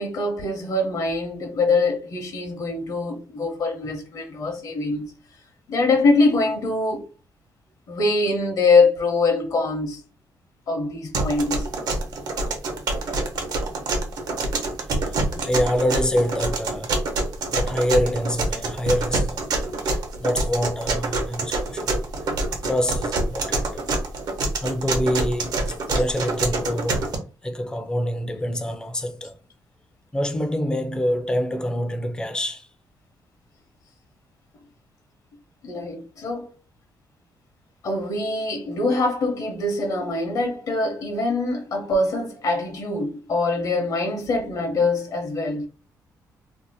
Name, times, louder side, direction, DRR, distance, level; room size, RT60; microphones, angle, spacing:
voice 1, 0.0-5.1 5.7-7.1 7.9-10.0 10.7-11.7 15.3-15.5 22.3-22.4 25.9-26.0 35.6-36.5 37.8-45.7, left 3 dB, 55° left, 0.8 m, -23 dB
sound 1, 11.1-27.2, right 2 dB, 65° right, 0.9 m, -26 dB
voice 2, 15.4-16.9 17.5-19.5 20.2-22.0 22.5-23.9 24.6-29.3 30.1-32.7, equal, 10° left, 0.4 m, -26 dB
2.6 x 2.0 x 4.0 m
cardioid pair, 140°, 7 cm